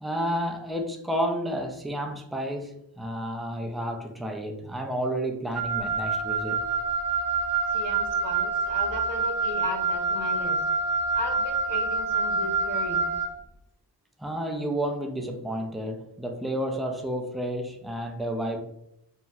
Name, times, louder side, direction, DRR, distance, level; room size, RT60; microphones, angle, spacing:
voice 1, 0.0-6.6 14.2-18.6, right 1 dB, ahead, 0.3 m, -31 dB
Wind instrument woodwind instrument, 5.5-13.3, right 4 dB, 45° right, 0.6 m, -27 dB
voice 2, 7.7-10.6 11.1-13.1, left 1 dB, 85° left, 0.7 m, -36 dB
2.7 x 2.0 x 3.5 m
wide cardioid pair, 70°, 42 cm